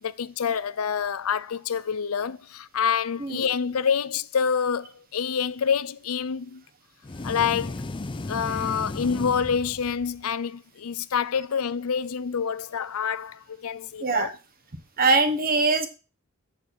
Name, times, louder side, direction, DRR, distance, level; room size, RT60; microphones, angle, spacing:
voice 1, 0.0-6.6 7.2-7.9 8.3-14.3, left 7 dB, 80° left, 0.5 m, -27 dB
sound 1, 7.0-10.2, left 2 dB, 25° left, 0.5 m, -35 dB
voice 2, 14.0-14.3 15.0-15.9, right 3 dB, 45° right, 1.5 m, -22 dB
7.8 x 6.8 x 6.3 m
head